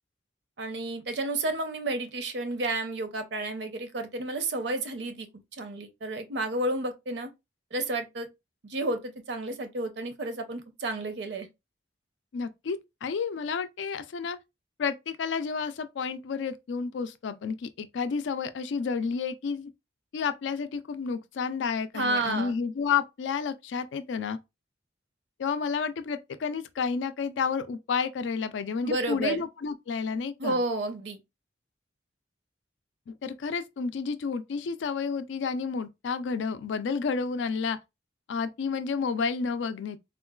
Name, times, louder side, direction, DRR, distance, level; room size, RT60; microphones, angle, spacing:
voice 1, 0.6-5.3 5.6-7.3 7.7-8.3 8.6-11.5 21.9-22.5 28.8-29.4 30.4-31.2, right 2 dB, 65° right, 0.6 m, -31 dB
voice 2, 12.3-14.4 14.8-19.7 20.1-24.4 25.4-30.6 33.1-37.8 38.3-40.0, left 5 dB, 75° left, 0.4 m, -31 dB
3.6 x 2.2 x 2.2 m
head